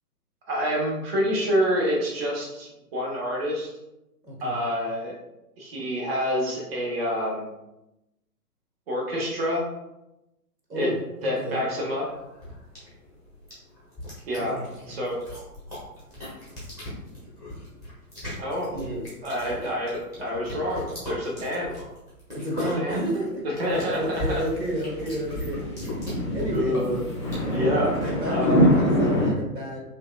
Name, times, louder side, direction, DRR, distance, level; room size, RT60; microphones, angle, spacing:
voice 1, 0.5-3.7 4.4-5.2 5.6-7.5 8.9-9.6 10.8-10.9 11.2-12.1 14.3-14.6 14.9-15.2 18.4-18.7 19.2-21.7 22.8-23.0 23.4-24.4 26.5-27.0 27.5-28.0 28.3-28.7, equal, 40° right, -3 dB, 0.9 m, -27 dB
voice 2, 4.2-4.6 10.7-11.6 14.4-15.0 18.7-19.1 22.3-23.4 24.0-25.6 26.3-26.8 28.0-29.8, right 1 dB, 85° right, -1 dB, 1.3 m, -31 dB
sound 1, 11.4-28.5, left 1 dB, 5° right, 0.8 m, -38 dB
sound 2, 23.7-29.3, equal, 20° left, 0.4 m, -25 dB
5.5 x 2.3 x 2.2 m, 0.93 s
figure-of-eight pair, 125°, 48 cm